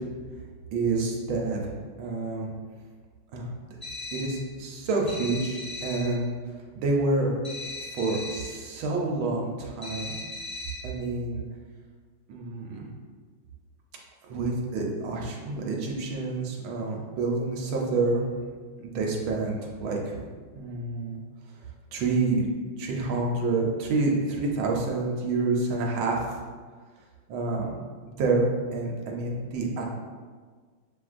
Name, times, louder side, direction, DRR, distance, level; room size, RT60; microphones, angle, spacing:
voice 1, 0.7-1.7 2.0-2.5 3.3-3.5 4.1-6.3 6.7-7.4 7.9-10.1 10.8-11.4 12.3-12.9 14.3-18.2 18.8-20.3 20.5-21.2 21.9-22.5 22.8-26.4 27.3-27.8 28.2-29.8, right 3 dB, 75° right, -1 dB, 1.5 m, -28 dB
sound 1, 3.8-4.4 5.1-6.2 7.4-8.6 9.8-10.9, left 3 dB, 50° left, 0.4 m, -38 dB
7.5 x 2.6 x 2.4 m, 1.5 s
omnidirectional pair, 2.3 m